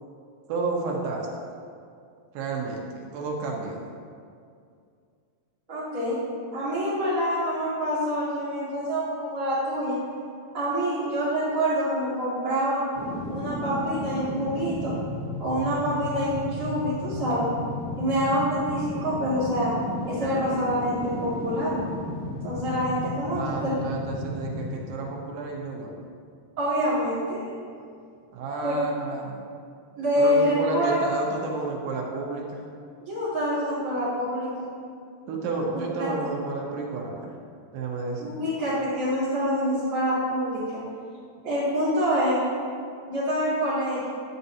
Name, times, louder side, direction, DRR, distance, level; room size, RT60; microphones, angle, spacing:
voice 1, 0.5-1.3 2.3-3.8 23.3-25.9 28.3-29.5 30.2-32.6 35.3-37.3 37.7-38.4, right 3 dB, 75° right, -1 dB, 3.0 m, -31 dB
voice 2, 5.7-6.2 6.5-10.0 10.5-12.8 13.3-14.9 15.4-17.5 17.9-19.7 20.1-21.7 22.4-23.7 26.6-27.4 28.6-28.7 30.0-30.9 33.0-34.7 36.0-36.1 38.2-40.8 41.4-42.5 43.1-44.1, equal, 35° right, -13 dB, 1.3 m, -26 dB
sound 1, 12.9-26.0 26.3-26.4, left 1 dB, 70° left, 3.2 m, -34 dB
9.9 x 9.3 x 2.8 m, 2.3 s
omnidirectional pair, 5.0 m